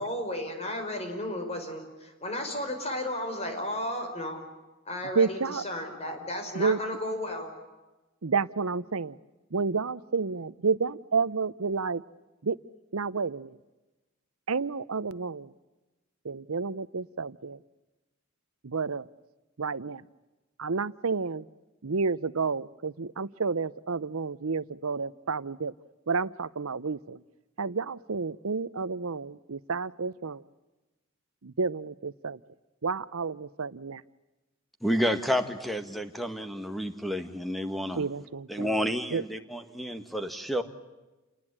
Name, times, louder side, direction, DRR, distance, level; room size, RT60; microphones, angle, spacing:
voice 1, 0.0-4.4 4.8-7.5, left 1 dB, 30° left, 5 dB, 5.1 m, -34 dB
voice 2, 5.1-5.6 6.5-6.8 8.2-9.2 9.5-12.0 12.4-12.6 12.9-13.6 14.5-15.5 16.2-17.6 18.6-19.1 19.6-20.0 20.6-21.4 21.8-25.7 26.1-27.2 27.6-30.4 31.4-32.4 32.8-34.0 38.0-38.7 39.1-39.2, right 4 dB, 80° right, 18 dB, 0.8 m, -30 dB
voice 3, 34.8-38.0 38.5-40.6, equal, ahead, 8 dB, 1.7 m, -30 dB
29.0 x 20.0 x 8.7 m, 1.1 s
head